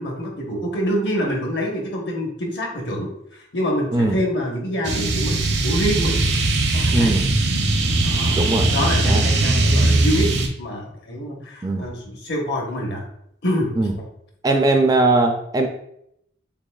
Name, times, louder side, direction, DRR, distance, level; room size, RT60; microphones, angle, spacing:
voice 1, 0.0-6.2 6.7-7.2 8.0-8.4 8.7-10.3 10.6-13.0 13.4-13.7, equal, 65° left, 0 dB, 1.1 m, -26 dB
sound 1, 4.8-10.5, right 2 dB, 65° right, 0.7 m, -20 dB
voice 2, 6.9-7.3 8.4-8.7 9.0-9.2 11.6-12.0 13.8-13.9 14.4-15.7, right 2 dB, 20° right, 4 dB, 0.3 m, -19 dB
6.7 x 2.9 x 2.3 m, 0.74 s
head